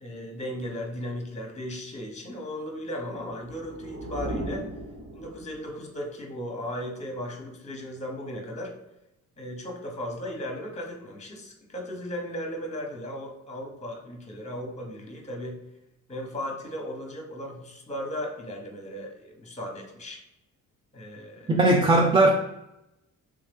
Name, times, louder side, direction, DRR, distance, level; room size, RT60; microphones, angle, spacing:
voice 1, 0.0-4.7 5.1-8.7 9.4-15.6 16.1-20.2 20.9-21.6, equal, 20° left, 2 dB, 1.0 m, -36 dB
sound 1, 3.2-5.8, right 1 dB, 50° right, 1.4 m, -37 dB
voice 2, 21.5-22.3, right 2 dB, 15° right, 2 dB, 0.4 m, -18 dB
3.5 x 2.9 x 3.4 m, 0.88 s
cardioid pair, 100°, 34 cm